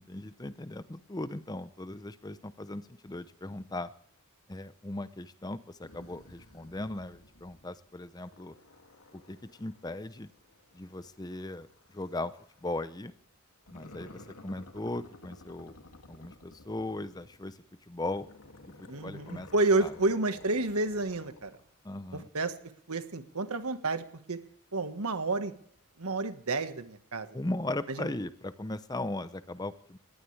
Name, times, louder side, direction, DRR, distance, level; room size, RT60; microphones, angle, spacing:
voice 1, 0.0-3.9 4.5-8.6 9.1-10.3 10.7-12.3 12.6-13.1 13.7-15.7 16.1-17.6 17.9-18.3 19.0-19.5 19.8-19.9 21.8-22.3 27.3-30.0, left 2 dB, 15° left, 13 dB, 0.6 m, -38 dB
sound 1, 5.8-7.8 8.2-12.7 13.6-17.5 18.0-21.7, left 2 dB, 85° left, 2.5 m, -54 dB
voice 2, 18.9-21.6 22.1-22.6 22.9-24.4 24.7-25.5 26.0-27.3 27.9-28.1, right 2 dB, 80° right, 9 dB, 1.5 m, -30 dB
20.0 x 18.5 x 3.4 m, 0.63 s
head